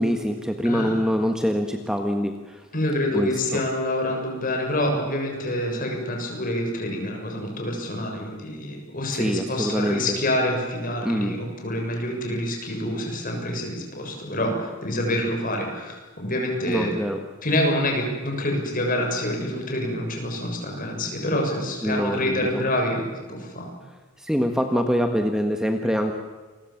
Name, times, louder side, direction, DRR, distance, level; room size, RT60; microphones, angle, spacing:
voice 1, 0.0-2.6 3.1-3.6 9.1-10.2 11.0-11.3 16.7-17.2 21.8-22.6 24.2-26.1, equal, 5° right, 5 dB, 1.5 m, -24 dB
voice 2, 2.7-16.9 17.4-23.7, left 1 dB, 40° left, 2 dB, 7.2 m, -27 dB
29.0 x 23.0 x 7.4 m, 1.4 s
head